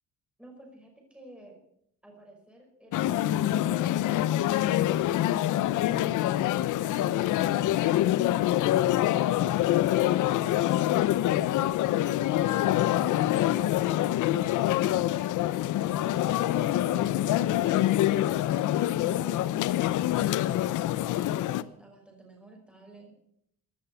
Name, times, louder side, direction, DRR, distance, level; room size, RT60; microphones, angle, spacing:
voice 1, 0.4-1.6 2.0-10.2 10.5-12.0 12.6-14.9 15.9-23.2, right 2 dB, 5° right, 1 dB, 5.6 m, -52 dB
sound 1, 2.9-21.6, left 13 dB, 85° left, 0.7 m, -25 dB
17.0 x 10.5 x 7.1 m, 0.73 s
cardioid pair, 90°, 30 cm